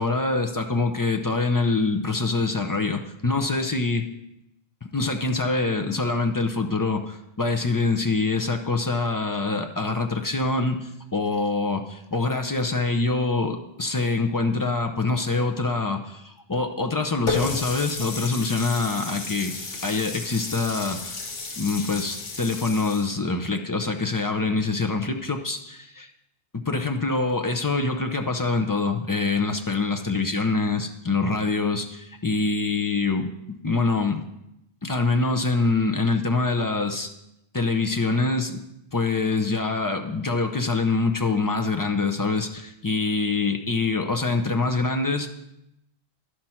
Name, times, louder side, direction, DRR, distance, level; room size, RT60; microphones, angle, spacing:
voice 1, 0.0-4.1 4.8-19.5 19.8-21.2 21.6-26.1 26.5-34.2 34.8-37.1 37.5-38.6 38.9-45.3, left 3 dB, 25° left, 4 dB, 0.4 m, -25 dB
Water tap faucet, 17.3-23.1, left 4 dB, 60° left, 1.3 m, -33 dB
11.0 x 5.9 x 4.4 m, 0.84 s
omnidirectional pair, 1.1 m